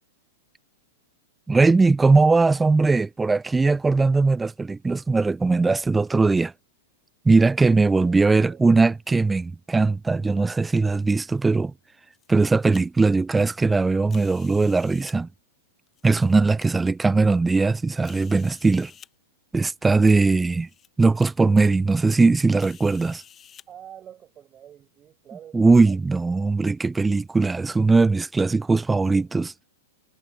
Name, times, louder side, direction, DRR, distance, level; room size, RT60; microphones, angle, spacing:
voice 1, 1.5-6.5 7.3-11.7 12.3-15.3 16.0-18.9 19.5-20.7 21.0-23.2 25.5-29.4, right 3 dB, 10° right, 0.4 m, -20 dB
voice 2, 8.0-8.7 23.7-26.0 26.3-26.4 29.1-29.3, right 10 dB, 25° right, 5.2 m, -46 dB
sound 1, 11.9-12.8 14.1-15.2 15.9-16.7 17.3-17.4 18.0-19.1 20.0-20.1 20.5-20.9 21.2-21.3 22.6-23.7, left 8 dB, 25° left, 1.3 m, -50 dB
figure-of-eight pair, 100°, 0 cm